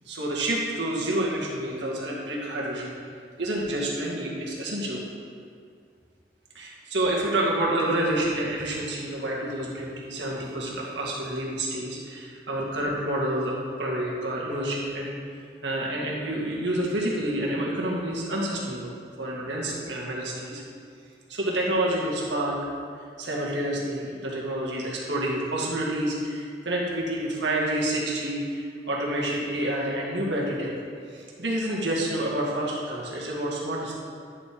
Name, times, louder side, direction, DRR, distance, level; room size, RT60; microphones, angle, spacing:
voice 1, 0.1-3.0 3.4-5.0 6.6-15.2 15.6-20.6 21.3-22.6 23.2-30.7 31.1-33.9, right 1 dB, 85° right, -4 dB, 1.9 m, -28 dB
10.5 x 7.1 x 3.7 m, 2.2 s
head